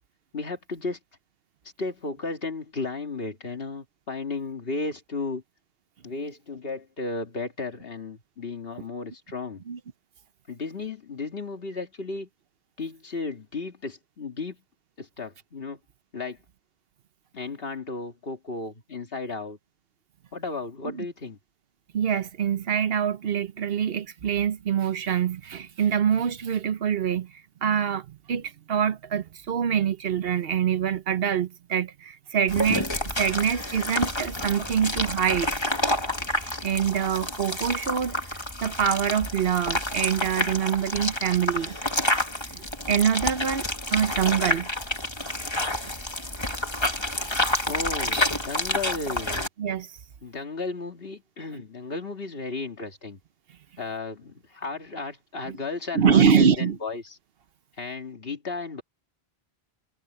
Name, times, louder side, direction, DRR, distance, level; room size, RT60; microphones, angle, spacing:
voice 1, 0.3-1.0 1.8-5.4 6.0-9.6 10.5-12.3 12.8-14.6 15.0-15.8 16.1-16.4 17.3-19.6 20.3-21.4 47.7-49.5 50.2-53.2 53.8-57.2 57.8-58.8, left 3 dB, 65° left, 2.2 m, -34 dB
voice 2, 21.9-35.5 36.4-38.2 38.6-41.8 42.5-44.7 49.6-49.9 55.9-56.8, right 8 dB, 70° right, 1.0 m, -25 dB
sound 1, 32.5-49.5, left 1 dB, 25° left, 2.4 m, -29 dB
omnidirectional pair, 1.1 m